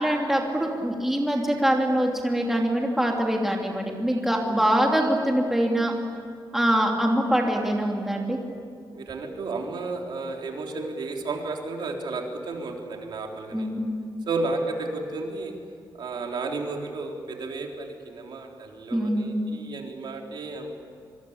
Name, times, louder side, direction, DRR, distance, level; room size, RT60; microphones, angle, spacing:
voice 1, 0.0-5.9 6.5-8.4 13.5-13.9 18.9-19.4, right 1 dB, 5° right, 0 dB, 2.9 m, -24 dB
voice 2, 8.9-13.7 14.3-15.6 16.0-20.7, right 3 dB, 65° right, 1 dB, 3.6 m, -32 dB
25.5 x 25.0 x 8.7 m, 2.3 s
wide cardioid pair, 170°, 9 cm